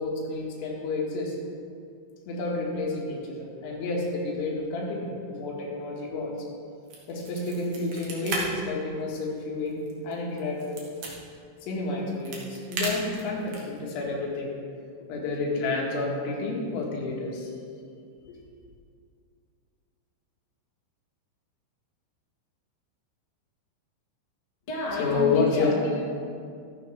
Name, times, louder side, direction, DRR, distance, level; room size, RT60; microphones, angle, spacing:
voice 1, 0.0-1.4 2.3-6.4 7.1-10.8 11.6-14.5 15.1-17.5 18.3-18.4 25.0-25.7, left 3 dB, 85° left, -3 dB, 4.4 m, -30 dB
sound 1, 6.8-8.4 8.7-8.8 9.3-11.1 11.9-13.8, right 3 dB, 55° right, 2.5 m, -35 dB
voice 2, 24.7-26.1, left 2 dB, 35° left, -7 dB, 2.9 m, -30 dB
14.0 x 12.5 x 3.4 m, 2.3 s
omnidirectional pair, 5.8 m